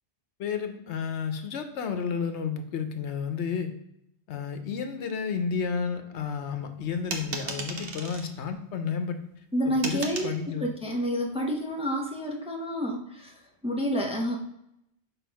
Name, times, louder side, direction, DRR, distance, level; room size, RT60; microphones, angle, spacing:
voice 1, 0.4-3.7 4.3-9.2 9.6-10.7, left 6 dB, 80° left, 7 dB, 1.0 m, -31 dB
sound 1, 7.1-8.3 9.8-10.3, right 3 dB, 60° right, 1.1 m, -35 dB
voice 2, 9.5-13.4 13.6-14.4, equal, 5° right, 0 dB, 0.7 m, -29 dB
6.0 x 3.5 x 4.6 m, 0.81 s
omnidirectional pair, 1.1 m